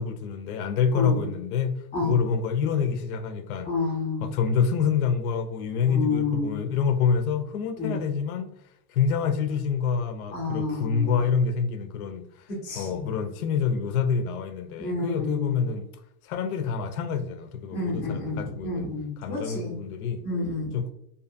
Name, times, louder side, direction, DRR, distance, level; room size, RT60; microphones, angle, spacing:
voice 1, 0.0-3.7 4.2-8.5 8.9-12.5 12.8-15.9 16.2-18.9 19.2-20.2 20.7-20.9, left 6 dB, 80° left, 0.5 m, -27 dB
voice 2, 0.9-1.3 1.9-2.2 3.6-4.3 5.8-6.6 7.8-8.0 10.3-11.2 12.6-13.1 14.8-15.6 17.7-19.8 20.2-20.7, left 3 dB, 15° left, 0.4 m, -29 dB
2.5 x 2.4 x 2.5 m
supercardioid pair, 175°, 44 cm